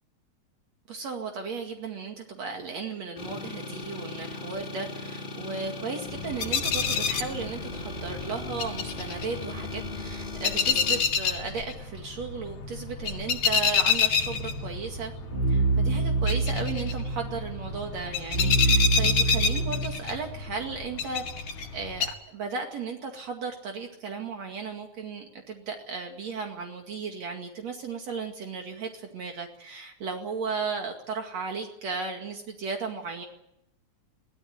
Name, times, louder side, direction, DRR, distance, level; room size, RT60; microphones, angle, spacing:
voice 1, 0.9-15.1 15.5-33.3, right 4 dB, 65° right, 2 dB, 3.4 m, -35 dB
sound 1, 3.2-11.0, left 3 dB, 15° left, 3.1 m, -38 dB
sound 2, 6.1-22.1, left 6 dB, 80° left, 3.7 m, -29 dB
sound 3, 14.2-19.9, right 2 dB, 20° right, 2.6 m, -27 dB
23.0 x 18.0 x 9.3 m, 0.80 s
omnidirectional pair, 3.3 m